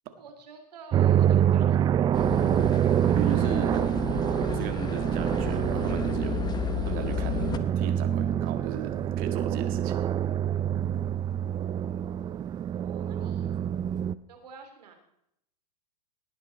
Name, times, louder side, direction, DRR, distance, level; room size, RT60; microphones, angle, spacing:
voice 1, 0.2-1.8 12.7-13.5 14.3-14.9, right 5 dB, 80° right, 5 dB, 3.4 m, -49 dB
sound 1, 0.9-14.1, right 10 dB, 20° right, 0.4 m, -26 dB
sound 2, 2.1-7.6, left 8 dB, 20° left, 0.9 m, -33 dB
voice 2, 3.1-3.9 4.4-6.5 6.8-10.0, right 10 dB, 45° right, 8 dB, 1.8 m, -36 dB
18.5 x 9.4 x 4.3 m, 0.76 s
hypercardioid pair, 115°, 21 cm